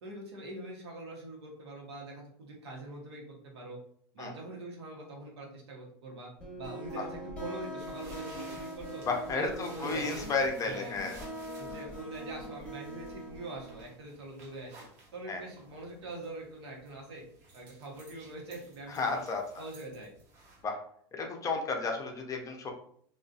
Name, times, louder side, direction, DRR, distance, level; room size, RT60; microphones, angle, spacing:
voice 1, 0.0-3.8 4.1-6.3 6.6-9.0 9.3-10.2 10.6-11.0 11.6-14.8 15.1-17.2 17.5-19.2 19.5-20.1, right 2 dB, 85° right, -1 dB, 1.0 m, -44 dB
sound 1, 6.4-13.9, right 1 dB, 10° left, 1.0 m, -43 dB
sound 2, 7.8-20.6, right 2 dB, 55° right, 1.1 m, -54 dB
voice 2, 9.1-11.1 15.3-15.4 18.9-19.4 20.6-20.8 21.1-22.7, left 4 dB, 25° left, 3 dB, 0.5 m, -32 dB
2.5 x 2.4 x 2.4 m, 0.62 s
supercardioid pair, 115°, 13 cm